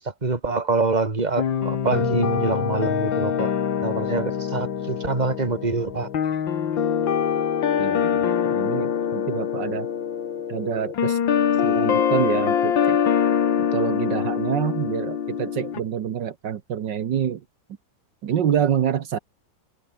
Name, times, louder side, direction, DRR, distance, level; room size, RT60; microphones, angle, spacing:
voice 1, 0.0-3.5 3.8-6.1, right 3 dB, 20° right, 2.5 m, -25 dB
sound 1, 1.4-15.8, left 8 dB, 90° left, 2.4 m, -24 dB
voice 2, 7.8-8.2 8.5-9.9 10.5-11.2 11.6-13.0 13.6-17.4 18.2-19.2, right 9 dB, 75° right, 1.8 m, -26 dB
omnidirectional pair, 2.0 m